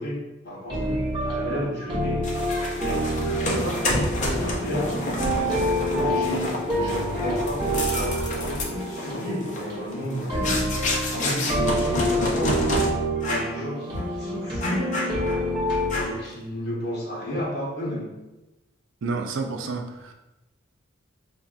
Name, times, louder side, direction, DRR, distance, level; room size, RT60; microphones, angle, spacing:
voice 1, 0.0-2.2 2.8-10.7 11.1-12.8 13.2-14.9 16.0-18.1, equal, 55° left, -3 dB, 1.0 m, -32 dB
sound 1, 0.7-16.0, equal, 25° right, 1.0 m, -27 dB
sound 2, 2.2-12.9 13.2-13.6 13.9-14.1 14.6-15.5 15.9-16.3, left 1 dB, 40° left, 0.6 m, -29 dB
voice 2, 19.0-20.1, right 4 dB, 65° right, 4 dB, 0.4 m, -30 dB
5.3 x 2.3 x 2.4 m, 1.0 s
head